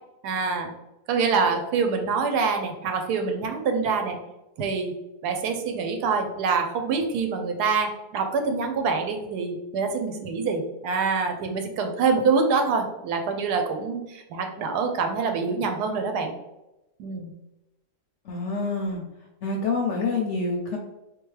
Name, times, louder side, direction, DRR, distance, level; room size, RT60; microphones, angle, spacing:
voice 1, 0.2-0.7 1.1-4.2 4.6-4.9 5.2-16.3 17.0-17.3, right 5 dB, 80° right, 5 dB, 1.2 m, -25 dB
voice 2, 18.3-19.0 19.4-20.8, left 3 dB, 65° left, 0 dB, 0.7 m, -27 dB
3.7 x 2.7 x 3.1 m, 0.96 s
omnidirectional pair, 1.7 m